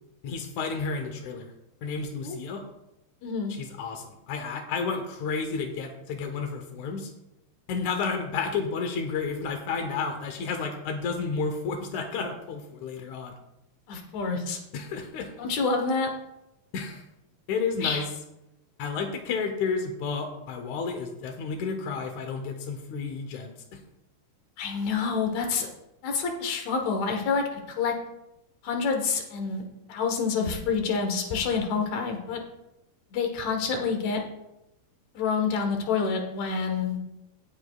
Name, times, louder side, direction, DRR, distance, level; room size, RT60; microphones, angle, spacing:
voice 1, 0.2-1.5 1.8-2.6 3.5-7.1 7.7-13.4 14.7-15.3 16.7-17.0 17.5-18.0 18.8-23.8, left 5 dB, 75° left, 5 dB, 1.7 m, -31 dB
voice 2, 3.2-3.5 13.9-14.6 15.4-16.1 17.8-18.0 24.6-25.7 26.0-27.9 28.6-29.6 29.9-32.4 33.1-34.2 35.1-37.0, left 5 dB, 60° left, 3 dB, 2.1 m, -27 dB
17.0 x 8.0 x 2.4 m, 0.91 s
omnidirectional pair, 4.6 m